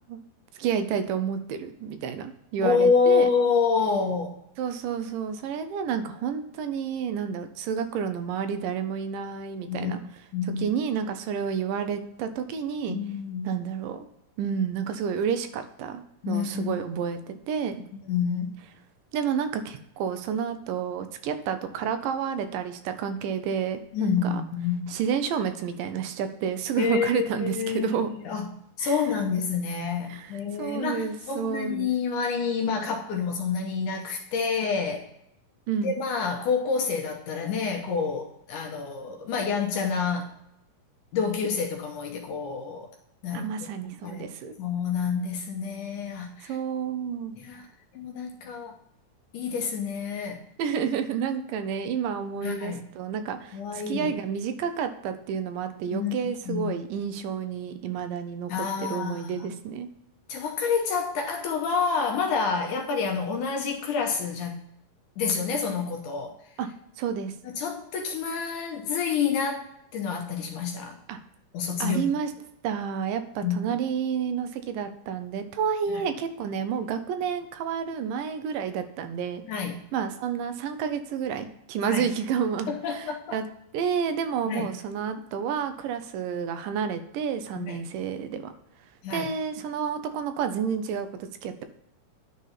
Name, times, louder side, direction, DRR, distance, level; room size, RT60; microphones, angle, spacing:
voice 1, 0.6-3.3 4.6-10.0 10.6-13.0 13.5-14.1 14.4-17.8 19.1-24.3 24.9-28.1 28.8-29.0 30.1-30.3 30.6-31.9 35.7-36.0 43.3-44.5 46.4-47.4 50.6-58.5 58.9-59.9 66.6-66.7 67.0-67.3 71.1-71.2 71.8-72.3 72.6-79.4 79.9-83.0 83.3-83.4 83.7-88.5 89.1-91.6, right 7 dB, 80° right, 9 dB, 2.3 m, -30 dB
voice 2, 2.6-4.4 9.6-9.9 10.3-10.7 12.9-13.6 16.2-16.8 18.0-18.5 23.9-24.9 26.8-28.0 28.3-28.5 28.8-35.1 35.8-40.3 41.1-42.9 43.2-43.5 44.0-44.2 44.6-46.6 47.4-47.7 47.9-48.8 49.3-50.4 52.4-52.9 53.5-54.1 55.9-56.1 56.5-56.8 58.5-59.6 60.3-64.6 65.2-66.4 67.4-71.0 71.5-72.1 73.4-73.6 75.9-76.0 79.5-79.8 81.8-82.0 82.7-83.4 84.5-84.7 87.6-87.8 89.0-89.3, left 5 dB, 70° left, 2 dB, 2.2 m, -28 dB
10.0 x 4.1 x 5.6 m, 0.78 s
omnidirectional pair, 3.9 m